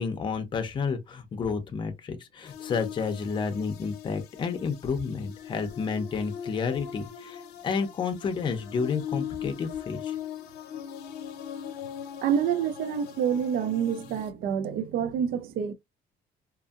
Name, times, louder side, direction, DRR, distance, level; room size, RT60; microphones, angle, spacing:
voice 1, 0.0-10.1, left 5 dB, 30° left, 0.6 m, -30 dB
sound 1, 2.5-14.3, left 9 dB, 80° left, 0.7 m, -40 dB
voice 2, 12.2-15.7, right 8 dB, 65° right, 0.4 m, -27 dB
2.6 x 2.6 x 2.4 m
cardioid pair, 160°, 17 cm